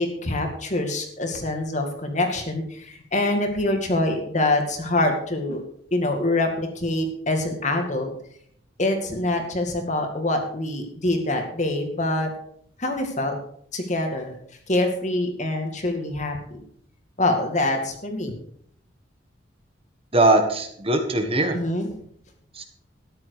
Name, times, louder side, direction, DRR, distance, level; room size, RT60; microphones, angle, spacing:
voice 1, 0.0-5.6 5.9-8.1 8.8-12.3 12.8-13.3 13.7-14.3 14.7-16.6 17.2-18.3 21.5-21.9, left 2 dB, 40° left, 4 dB, 2.2 m, -25 dB
voice 2, 20.1-21.6 22.5-22.6, right 2 dB, 30° right, 5 dB, 1.5 m, -20 dB
13.0 x 10.5 x 4.9 m, 0.65 s
head